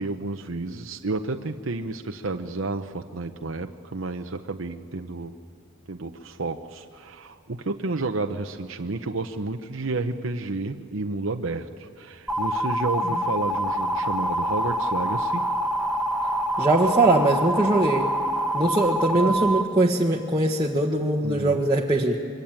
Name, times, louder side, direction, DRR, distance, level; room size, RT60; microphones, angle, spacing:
voice 1, 0.0-5.3 5.9-15.5 19.2-19.5 21.2-21.6, right 3 dB, 70° right, 5 dB, 0.9 m, -31 dB
sound 1, 12.3-19.6, right 1 dB, ahead, 1.0 m, -26 dB
voice 2, 16.6-18.1 18.5-22.2, right 2 dB, 20° right, -2 dB, 1.4 m, -21 dB
26.0 x 23.5 x 9.0 m, 2.2 s
head